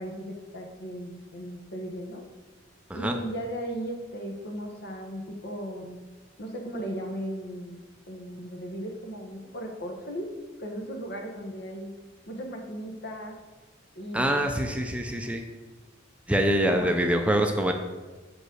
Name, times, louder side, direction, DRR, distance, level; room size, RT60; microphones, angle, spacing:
voice 1, 0.0-2.2 2.9-6.0 6.4-10.3 10.6-11.9 12.3-13.4 13.9-14.5 16.7-17.0, equal, 60° left, 2 dB, 1.3 m, -36 dB
voice 2, 14.1-15.4 16.3-17.7, right 1 dB, 5° right, 4 dB, 0.6 m, -25 dB
6.8 x 5.2 x 6.3 m, 1.3 s
head